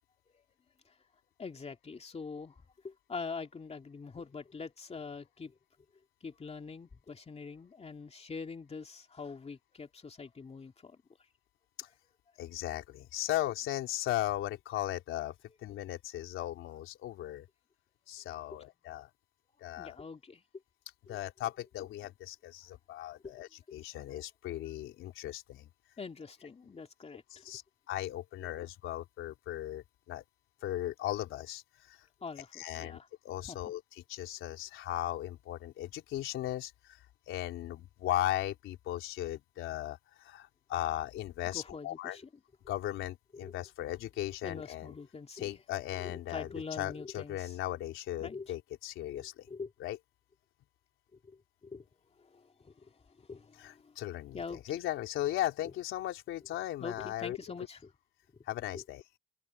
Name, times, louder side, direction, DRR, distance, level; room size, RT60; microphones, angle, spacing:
voice 1, 1.4-5.6 6.2-11.0 18.5-18.6 19.8-20.4 21.1-21.2 23.2-23.4 26.0-27.5 28.4-28.5 32.2-33.1 33.4-33.6 41.5-42.3 43.3-43.6 44.4-45.6 45.9-47.6 48.2-48.5 49.1-49.7 51.1-51.9 52.2-54.0 54.3-54.8 56.8-57.9 58.7-58.8, left 4 dB, 30° left, 2.6 m, -44 dB
voice 2, 12.4-15.3 15.6-17.5 18.1-19.1 19.6-20.0 21.1-25.7 27.4-27.6 27.9-30.2 30.6-31.6 31.9-32.0 32.6-33.0 33.2-33.8 34.1-37.0 37.3-42.2 42.7-44.9 45.4-46.5 46.8-49.5 49.8-50.0 53.6-57.4 58.5-59.0, left 13 dB, 85° left, 3.6 m, -37 dB
cardioid pair, 90°, 20 cm